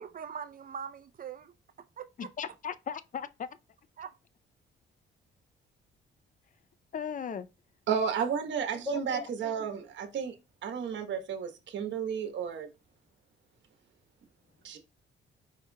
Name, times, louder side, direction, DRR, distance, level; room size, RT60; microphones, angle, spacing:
voice 1, 0.0-1.5 2.0-2.3 4.0-4.1, right 7 dB, 45° right, 0.6 m, -42 dB
voice 2, 2.2-3.5 6.9-7.5 8.9-9.3, left 7 dB, 40° left, 0.5 m, -37 dB
voice 3, 7.9-10.3 10.6-12.7 14.6-14.8, right 7 dB, 65° right, 1.2 m, -32 dB
4.9 x 4.3 x 2.2 m
cardioid pair, 90°, 20 cm